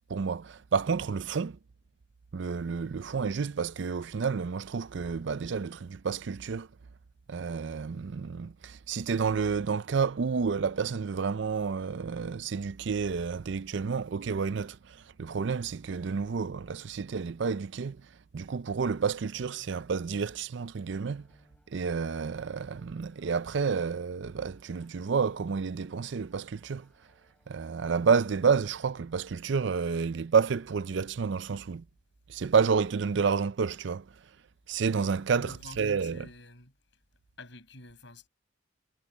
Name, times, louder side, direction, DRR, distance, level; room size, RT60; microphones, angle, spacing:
voice 1, 0.1-1.6 2.3-6.7 7.3-18.1 18.3-21.3 21.7-26.9 27.5-31.8 32.3-34.2 34.7-36.2, right 5 dB, 60° right, 0.4 m, -30 dB
sound 1, 21.0-28.5, equal, 5° left, 3.7 m, -69 dB
voice 2, 35.4-36.8 37.4-38.3, left 2 dB, 60° left, 7.0 m, -49 dB
head